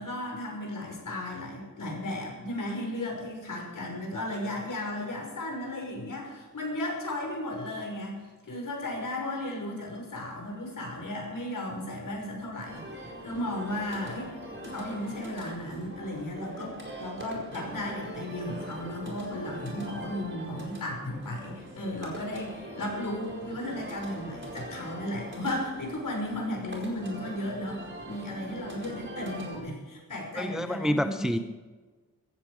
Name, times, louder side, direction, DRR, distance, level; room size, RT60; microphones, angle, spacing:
voice 1, 0.0-8.2 8.5-14.3 14.6-31.4, left 1 dB, 65° left, 0 dB, 5.7 m, -35 dB
sound 1, 12.6-29.6, right 1 dB, 35° right, 4.6 m, -42 dB
voice 2, 30.4-31.4, equal, ahead, 9 dB, 0.7 m, -28 dB
15.5 x 15.0 x 5.1 m, 1.3 s
wide cardioid pair, 95°, 34 cm